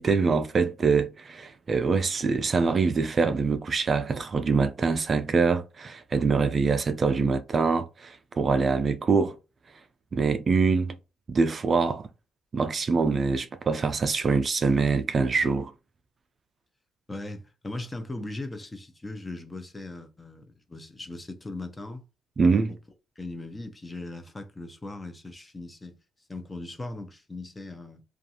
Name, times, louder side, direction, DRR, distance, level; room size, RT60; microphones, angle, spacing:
voice 1, 0.0-9.4 10.1-11.0 11.3-12.1 12.5-15.7 22.4-22.7, right 4 dB, 40° right, 0.4 m, -24 dB
voice 2, 17.1-22.0 23.2-26.0 26.3-28.0, left 2 dB, 20° left, 0.5 m, -39 dB
2.5 x 2.3 x 2.7 m
cardioid pair, 90°, 0 cm